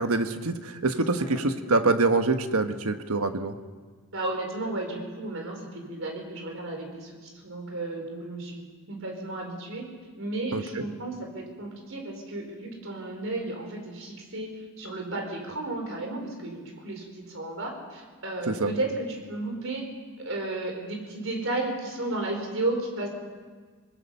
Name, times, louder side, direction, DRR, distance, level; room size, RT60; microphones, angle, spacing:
voice 1, 0.0-3.5 10.5-10.6 18.5-18.7, right 3 dB, 80° right, 8 dB, 1.3 m, -25 dB
voice 2, 1.0-1.4 4.1-9.9 10.2-14.5 14.8-19.9 20.2-23.1, right 2 dB, 60° right, 3 dB, 4.6 m, -33 dB
26.5 x 20.0 x 5.7 m, 1.5 s
head